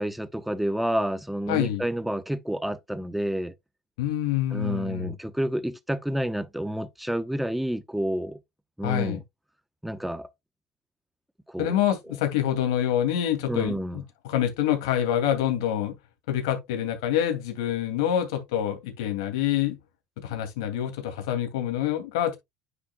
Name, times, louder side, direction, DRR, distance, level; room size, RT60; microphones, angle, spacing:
voice 1, 0.0-3.5 4.5-8.4 8.8-9.2 9.8-10.3 11.5-11.8 13.5-14.0, right 1 dB, 5° right, 1.0 m, -29 dB
voice 2, 1.5-1.8 4.0-5.1 8.8-9.2 11.6-15.9 16.3-19.8 20.2-22.4, left 10 dB, 80° left, 2.6 m, -26 dB
9.6 x 5.8 x 2.3 m
supercardioid pair, 85°, 2 cm